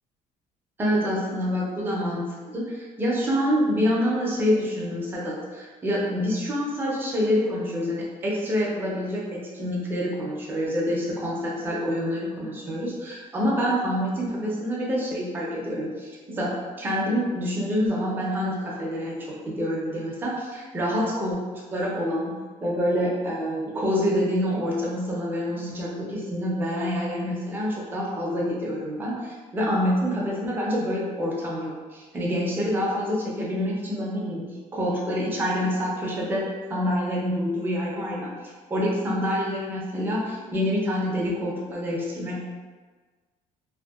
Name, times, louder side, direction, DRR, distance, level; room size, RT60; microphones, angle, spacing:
voice 1, 0.8-16.5 16.8-19.2 19.5-22.3 22.6-34.4 34.7-42.4, equal, 15° right, -4 dB, 0.4 m, -27 dB
2.6 x 2.1 x 2.3 m, 1.4 s
cardioid pair, 180°, 14 cm